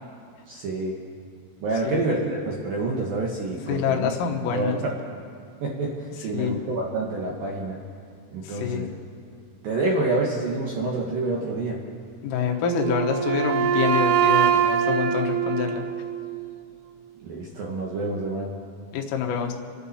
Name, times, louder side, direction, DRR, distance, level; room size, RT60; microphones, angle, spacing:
voice 1, 0.5-1.0 1.6-4.1 4.5-5.0 5.6-7.8 8.3-8.9 9.6-11.8 17.2-18.5, right 2 dB, 70° right, -3 dB, 2.2 m, -27 dB
voice 2, 3.7-4.8 6.3-6.5 8.4-8.8 12.2-15.8 18.9-19.5, left 7 dB, 85° left, 2 dB, 3.9 m, -26 dB
Wind instrument woodwind instrument, 12.6-16.6, right 8 dB, 90° right, 2.5 m, -23 dB
29.5 x 10.0 x 4.2 m, 2.3 s
omnidirectional pair, 5.8 m